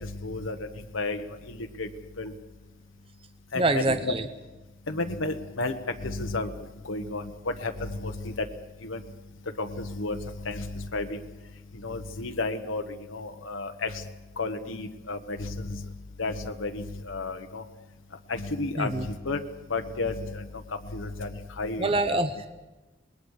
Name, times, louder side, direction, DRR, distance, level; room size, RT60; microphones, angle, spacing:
voice 1, 0.0-0.5 0.9-1.9 2.2-2.3 3.5-4.1 4.9-5.7 6.0-6.5 6.9-7.2 7.6-8.3 8.8-9.0 9.6-10.2 10.4-11.2 11.8-12.8 13.1-13.9 14.4-15.8 16.2-17.6 18.3-19.4 19.7-20.4 20.9-21.3 21.6-22.2, left 3 dB, 90° left, 5 dB, 1.3 m, -32 dB
voice 2, 3.5-4.3 18.8-19.1 21.8-22.5, right 2 dB, 30° right, 9 dB, 0.7 m, -25 dB
27.0 x 20.5 x 4.9 m, 1.1 s
head